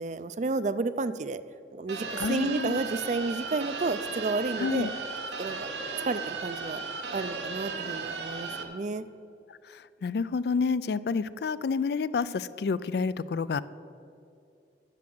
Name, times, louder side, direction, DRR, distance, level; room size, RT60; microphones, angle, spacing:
voice 1, 0.0-1.4 1.7-4.9 5.4-5.7 6.1-6.8 7.1-9.0, right 3 dB, 45° right, 13 dB, 0.4 m, -31 dB
sound 1, 1.9-8.6, right 4 dB, 80° right, 1.1 m, -35 dB
voice 2, 2.2-2.8 4.6-4.9 9.7-13.6, left 5 dB, 60° left, 17 dB, 0.3 m, -29 dB
10.5 x 7.6 x 7.7 m, 2.7 s
head